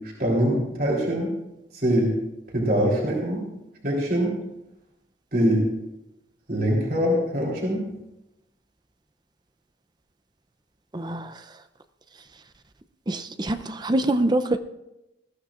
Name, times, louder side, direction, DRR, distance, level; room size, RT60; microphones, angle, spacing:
voice 1, 0.2-1.3 1.7-2.1 2.5-3.4 3.8-4.4 5.3-5.7 6.5-7.9, equal, 50° right, -2 dB, 3.3 m, -23 dB
voice 2, 10.9-11.3 13.1-14.6, right 1 dB, 25° right, 10 dB, 0.5 m, -25 dB
20.5 x 14.5 x 2.5 m, 0.92 s
head